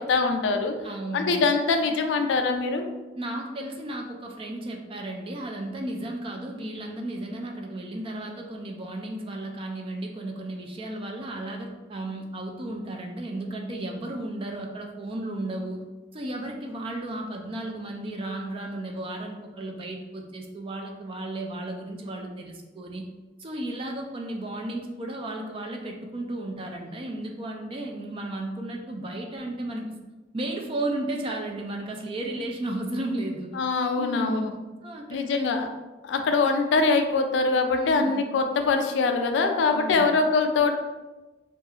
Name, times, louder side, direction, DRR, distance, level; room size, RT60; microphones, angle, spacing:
voice 1, 0.0-0.7 1.1-2.8 33.5-34.5 35.1-35.7 36.0-40.8, left 4 dB, 75° left, 5 dB, 0.3 m, -23 dB
voice 2, 0.8-1.5 3.2-15.8 16.1-23.1 23.4-29.9 30.3-33.5 34.0-34.5 34.8-35.5 37.8-38.2 39.7-40.1, right 1 dB, 30° right, 2 dB, 0.3 m, -34 dB
2.3 x 2.3 x 2.7 m, 1.2 s
head